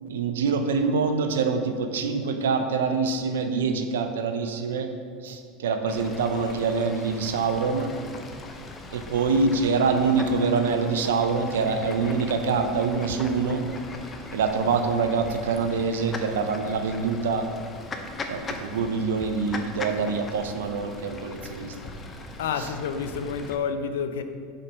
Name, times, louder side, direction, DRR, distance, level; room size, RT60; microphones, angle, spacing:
voice 1, 0.0-4.9 5.2-7.9 8.9-13.6 14.3-17.5 18.3-21.7 22.6-22.7, right 4 dB, 85° right, 7 dB, 0.5 m, -25 dB
Fowl / Bird, 5.9-23.6, left 3 dB, 25° left, 0.6 m, -40 dB
voice 2, 22.4-24.2, left 6 dB, 85° left, 9 dB, 0.4 m, -29 dB
5.0 x 4.3 x 5.5 m, 2.1 s
hypercardioid pair, 100°, 0 cm